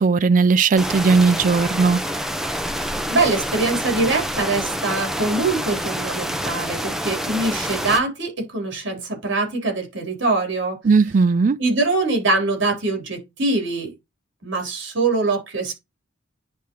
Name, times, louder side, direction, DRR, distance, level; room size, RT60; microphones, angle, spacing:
voice 1, 0.0-2.0 10.8-11.6, right 4 dB, 40° right, 0.4 m, -17 dB
sound 1, 0.8-8.0, equal, ahead, 0.7 m, -27 dB
voice 2, 3.1-10.8 11.6-13.9 14.4-15.7, right 3 dB, 65° right, 3.4 m, -23 dB
10.5 x 3.5 x 2.9 m
head